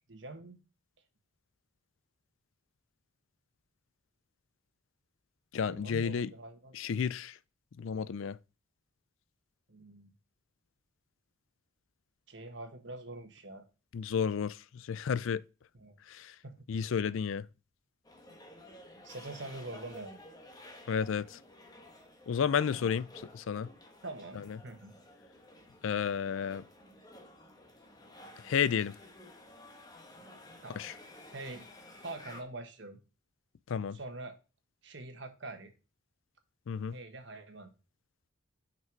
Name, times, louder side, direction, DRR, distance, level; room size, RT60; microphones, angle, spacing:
voice 1, 0.1-0.6 5.6-6.7 9.7-10.1 12.3-13.7 15.7-16.0 16.4-16.6 19.0-20.2 22.7-22.9 24.0-24.9 30.6-30.8 31.3-31.7 32.0-33.0 33.9-34.4 34.8-35.7 36.9-37.7, right 2 dB, 60° right, 1.4 m, -44 dB
voice 2, 5.5-6.3 6.7-7.4 7.8-8.4 13.9-15.4 16.1-16.3 16.7-17.5 20.9-21.4 22.3-23.1 23.3-23.7 24.4-24.6 25.8-26.6 28.4-28.9 30.8-30.9 33.7-34.0 36.7-37.0, left 7 dB, 70° left, 0.4 m, -32 dB
sound 1, 18.0-32.4, left 1 dB, 20° left, 1.1 m, -53 dB
6.1 x 5.8 x 4.5 m
head